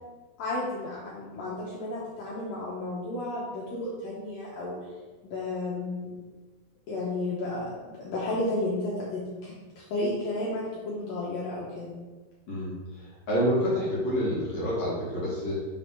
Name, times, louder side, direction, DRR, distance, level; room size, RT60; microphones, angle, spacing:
voice 1, 0.4-4.8 5.2-6.1 6.9-11.9, left 2 dB, 70° left, -6 dB, 2.6 m, -32 dB
voice 2, 12.5-15.7, equal, 50° left, -7 dB, 2.3 m, -28 dB
6.1 x 4.1 x 5.4 m, 1.3 s
omnidirectional pair, 4.6 m